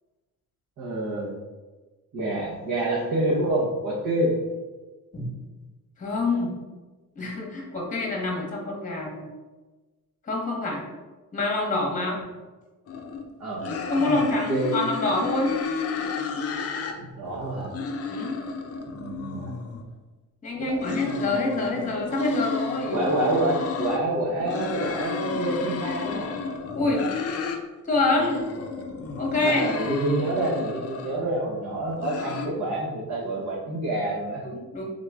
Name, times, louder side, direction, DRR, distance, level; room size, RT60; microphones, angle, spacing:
voice 1, 0.8-1.4 2.1-4.4 13.4-14.2 14.5-14.8 17.0-17.7 18.9-19.5 20.6-21.2 22.9-26.3 29.4-34.4, right 1 dB, 50° right, -6 dB, 1.0 m, -27 dB
voice 2, 6.0-6.5 7.1-9.3 10.2-10.8 11.3-12.2 13.9-15.6 18.1-18.4 20.4-23.0 26.7-27.1 27.9-28.4 29.2-29.7 34.5-34.8, left 2 dB, 20° left, -1 dB, 1.1 m, -26 dB
sound 1, 12.9-13.2 13.6-16.9 17.3-19.8 20.6-24.0 24.4-27.6 27.9-31.2 31.7-32.5, left 5 dB, 40° left, 0.5 m, -32 dB
3.8 x 3.1 x 3.5 m, 1.2 s
cardioid pair, 115°, 36 cm